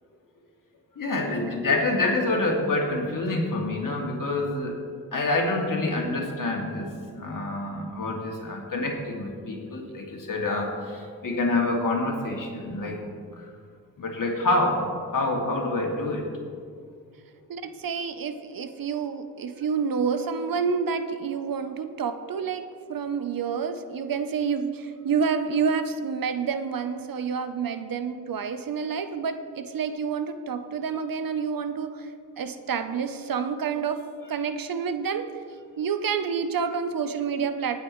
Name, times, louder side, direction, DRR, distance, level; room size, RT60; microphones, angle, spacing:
voice 1, 1.0-4.8 5.1-13.0 13.3-13.5 14.0-14.8 15.1-16.3, left 2 dB, 55° left, 0 dB, 2.5 m, -27 dB
voice 2, 17.5-22.6 22.9-32.1 32.4-34.0 34.3-35.3 35.8-37.8, right 6 dB, 60° right, 9 dB, 0.8 m, -28 dB
19.0 x 8.3 x 3.2 m, 2.2 s
cardioid pair, 55°, 39 cm